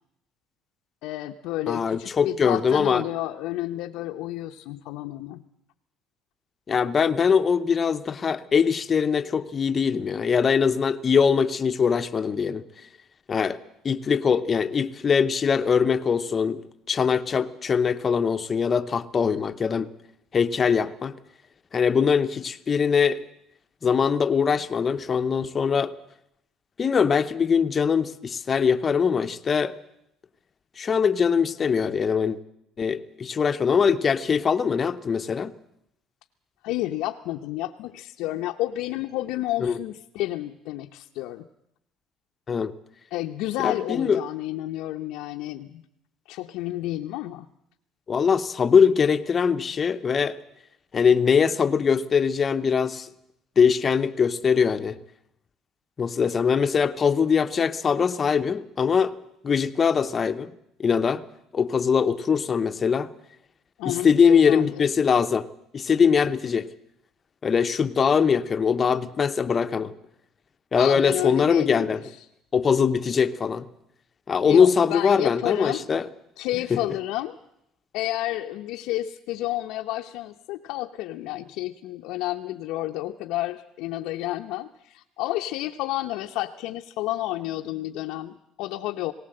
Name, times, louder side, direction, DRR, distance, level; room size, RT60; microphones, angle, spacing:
voice 1, 1.0-5.4 36.6-41.5 43.1-45.8 46.3-47.5 63.8-64.9 70.8-72.3 74.4-75.8 76.4-77.4 77.9-89.1, left 15 dB, 80° left, 2 dB, 0.8 m, -31 dB
voice 2, 1.7-3.0 6.7-12.6 13.3-13.6 13.8-19.9 20.3-21.1 21.7-23.2 23.8-25.9 26.8-29.7 30.8-32.4 32.8-35.5 39.6-39.8 42.5-42.7 43.6-44.2 48.1-50.4 50.9-53.1 53.6-55.0 56.0-59.1 59.4-60.5 60.8-61.2 61.5-63.1 63.8-65.5 65.7-66.7 67.4-69.9 70.7-72.0 72.5-73.7 74.3-76.0 76.7-76.8, left 6 dB, 30° left, 10 dB, 0.8 m, -22 dB
19.0 x 18.0 x 7.8 m, 0.78 s
cardioid pair, 145°, 0 cm